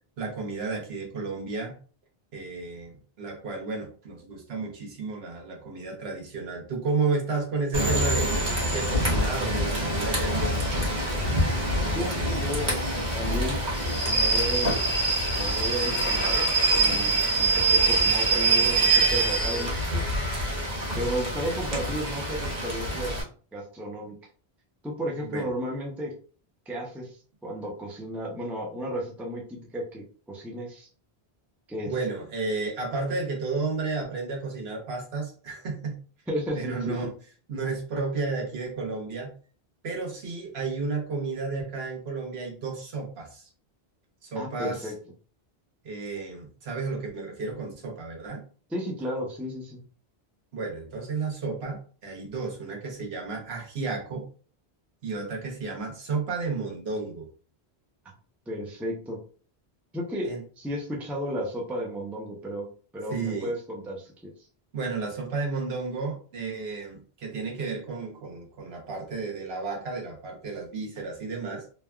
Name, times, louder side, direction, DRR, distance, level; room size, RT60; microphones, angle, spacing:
voice 1, 0.2-1.8 2.3-8.3 8.7-10.8 25.3-25.5 31.9-36.0 36.5-37.1 37.5-39.3 39.8-43.5 44.2-44.9 45.8-48.4 50.5-54.2 55.0-57.3 60.2-60.4 63.1-63.5 64.7-71.6, right 4 dB, 75° right, 0 dB, 1.1 m, -32 dB
Rain / Train, 7.7-23.2, right 2 dB, 45° right, 1.2 m, -25 dB
voice 2, 11.9-12.8 13.1-13.6 14.1-14.8 15.3-20.0 20.9-23.1 23.5-24.1 24.8-26.1 26.7-27.2 27.4-30.9 31.7-31.9 36.3-37.0 44.3-44.9 48.7-49.8 58.5-59.2 59.9-62.7 62.9-64.3, equal, ahead, -2 dB, 0.4 m, -33 dB
3.2 x 2.2 x 2.2 m, 0.41 s
omnidirectional pair, 1.1 m